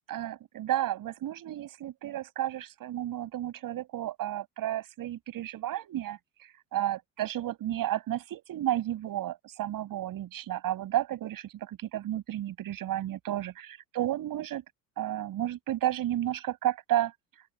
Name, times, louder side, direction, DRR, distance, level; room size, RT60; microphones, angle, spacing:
voice 1, 0.1-14.6 15.0-17.1, right 13 dB, 45° right, 7.1 m, -32 dB
open air
figure-of-eight pair, 65°, 45 cm